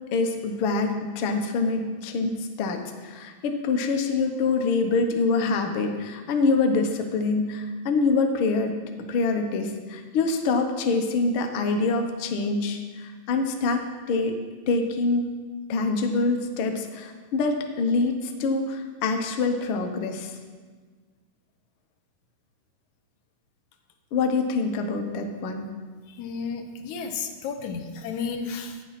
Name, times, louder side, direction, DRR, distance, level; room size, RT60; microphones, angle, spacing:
voice 1, 0.1-8.7 9.1-13.8 14.1-14.4 14.7-15.3 15.7-20.4 24.1-25.7, left 3 dB, 60° left, 5 dB, 1.5 m, -25 dB
voice 2, 26.1-28.8, left 5 dB, 85° left, 5 dB, 2.4 m, -33 dB
11.5 x 8.9 x 5.9 m, 1.5 s
omnidirectional pair, 3.4 m